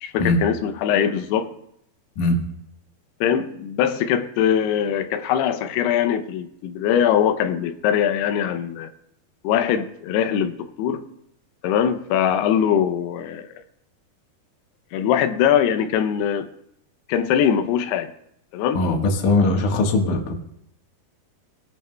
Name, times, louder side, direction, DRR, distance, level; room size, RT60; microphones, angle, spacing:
voice 1, 0.0-1.5 3.2-8.9 9.4-11.1 11.6-13.6 14.9-16.5 17.1-18.1 18.5-18.9, left 9 dB, 90° left, 2.7 m, -22 dB
voice 2, 18.7-20.3, left 2 dB, 60° left, 2.6 m, -20 dB
19.0 x 11.0 x 2.2 m
omnidirectional pair, 4.6 m